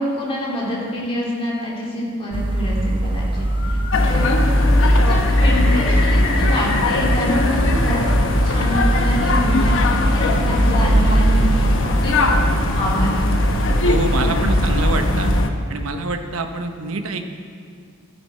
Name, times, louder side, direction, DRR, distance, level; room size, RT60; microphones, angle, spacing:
voice 1, 0.0-3.8 4.1-8.0 8.4-13.1, left 1 dB, 25° left, -5 dB, 2.7 m, -26 dB
sound 1, 2.3-15.4, right 1 dB, 20° right, 0.4 m, -23 dB
Bird, 3.4-3.9 4.2-7.9 8.2-9.0, left 3 dB, 85° left, 1.9 m, -31 dB
sound 2, 3.9-15.5, left 1 dB, 60° left, 0.8 m, -19 dB
voice 2, 13.8-15.3 15.7-17.3, right 3 dB, 70° right, 6 dB, 0.8 m, -26 dB
13.0 x 9.7 x 4.8 m, 2.2 s
head